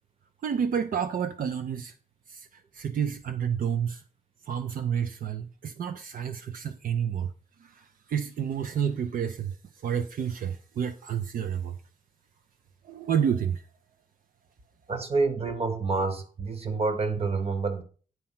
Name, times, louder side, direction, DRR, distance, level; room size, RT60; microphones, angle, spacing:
voice 1, 0.4-1.9 2.3-4.0 4.4-7.3 7.6-11.8 12.8-13.6, right 8 dB, 75° right, 0.6 m, -30 dB
voice 2, 14.9-17.8, right 3 dB, 45° right, 1.3 m, -28 dB
9.7 x 4.4 x 5.7 m
wide cardioid pair, 140°, 15 cm